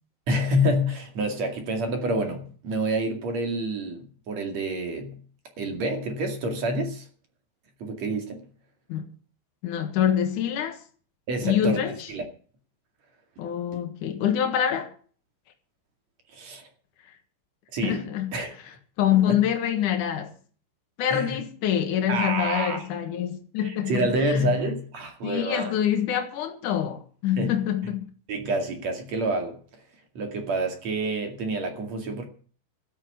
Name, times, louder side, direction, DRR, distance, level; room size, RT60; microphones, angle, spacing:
voice 1, 0.3-5.2 5.6-7.1 7.8-8.5 11.3-12.2 16.3-16.7 17.7-18.5 19.3-19.4 21.1-21.4 22.1-22.9 23.6-25.8 27.4-27.5 28.3-29.6 30.1-32.3, right 1 dB, 45° right, 2.4 m, -28 dB
voice 2, 9.6-10.8 11.4-12.1 13.4-14.9 17.8-18.3 19.0-20.3 21.0-24.5 25.2-28.1, left 10 dB, 85° left, 1.7 m, -25 dB
14.0 x 8.8 x 8.3 m
omnidirectional pair, 6.0 m